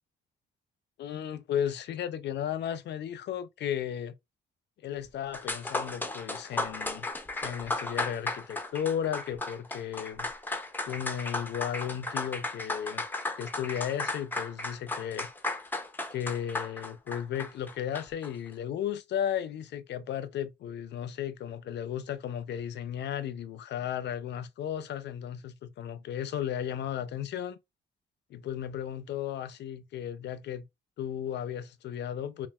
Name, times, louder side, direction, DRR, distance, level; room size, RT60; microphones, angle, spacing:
voice 1, 1.0-4.1 4.8-7.1 7.4-13.1 13.4-15.3 16.1-27.6 28.3-30.7 31.0-32.5, left 9 dB, 65° left, 0.5 m, -35 dB
sound 1, 5.0-5.1 5.3-18.3, left 2 dB, 10° left, 0.5 m, -35 dB
5.5 x 2.4 x 2.3 m
cardioid pair, 145°, 19 cm